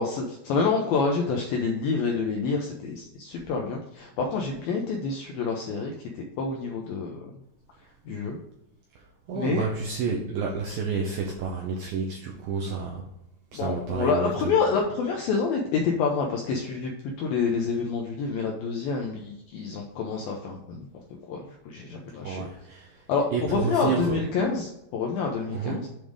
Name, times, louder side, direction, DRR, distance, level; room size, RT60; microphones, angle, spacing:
voice 1, 0.0-7.3 8.1-8.4 9.3-9.6 13.5-16.9 17.2-20.9 21.3-22.4 23.1-25.9, left 5 dB, 80° left, 1 dB, 2.1 m, -28 dB
voice 2, 9.0-13.1 13.5-14.6 22.2-23.0 23.3-24.2 25.5-25.9, right 5 dB, 80° right, -1 dB, 2.1 m, -30 dB
7.6 x 3.5 x 6.3 m, 0.87 s
omnidirectional pair, 5.1 m